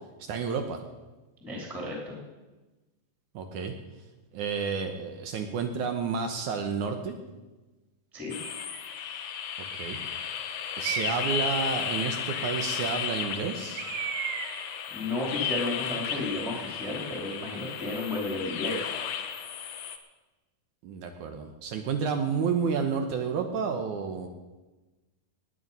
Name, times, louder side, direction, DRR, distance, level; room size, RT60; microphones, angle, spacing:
voice 1, 0.2-0.8 3.3-3.7 4.3-7.2 9.8-10.0 10.8-13.8 20.8-24.3, right 6 dB, 70° right, 5 dB, 2.1 m, -30 dB
voice 2, 1.4-2.2 8.1-8.3 14.9-18.9, left 2 dB, ahead, -2 dB, 2.3 m, -33 dB
sound 1, 8.3-20.0, left 8 dB, 80° left, 1.4 m, -34 dB
Bird, 8.4-8.9 9.6-10.2 10.8-11.4 13.8-14.8, right 8 dB, 85° right, 1.3 m, -36 dB
19.0 x 9.4 x 5.4 m, 1.2 s
omnidirectional pair, 4.2 m